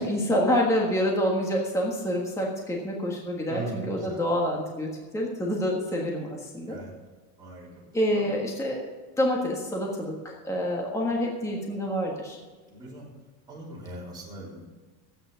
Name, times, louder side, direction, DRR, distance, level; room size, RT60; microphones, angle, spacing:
voice 1, 0.0-6.8 7.9-8.8 9.2-12.4, equal, 5° left, -1 dB, 1.5 m, -27 dB
voice 2, 3.5-4.2 6.6-6.9 7.4-7.8 8.1-8.3 12.7-13.1 13.5-14.7, right 2 dB, 10° right, -7 dB, 3.7 m, -40 dB
13.0 x 9.1 x 5.6 m, 1.4 s
cardioid pair, 165°, 43 cm